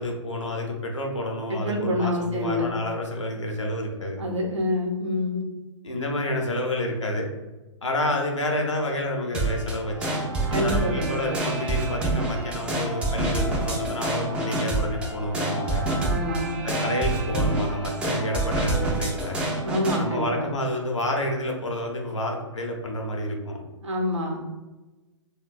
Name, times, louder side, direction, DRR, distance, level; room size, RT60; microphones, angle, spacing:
voice 1, 0.0-4.2 5.8-7.3 7.8-10.2 10.5-15.9 16.6-19.4 20.0-23.6, left 1 dB, 75° left, 1 dB, 0.7 m, -29 dB
voice 2, 1.5-2.7 4.2-5.5 10.5-11.4 16.0-16.6 19.6-20.5 23.8-24.4, left 1 dB, 70° right, 0 dB, 0.7 m, -27 dB
sound 1, 9.3-20.0, right 2 dB, 5° right, 0.3 m, -27 dB
3.1 x 2.2 x 2.4 m, 1.1 s
figure-of-eight pair, 120°, 16 cm